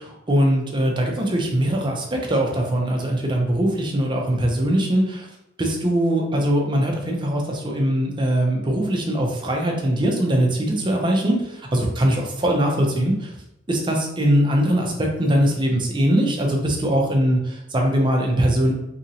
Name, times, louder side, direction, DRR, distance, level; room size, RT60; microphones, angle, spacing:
voice 1, 0.0-5.3 5.6-13.3 13.7-18.7, right 1 dB, 25° right, 0 dB, 0.5 m, -21 dB
2.8 x 2.6 x 2.8 m, 0.83 s
head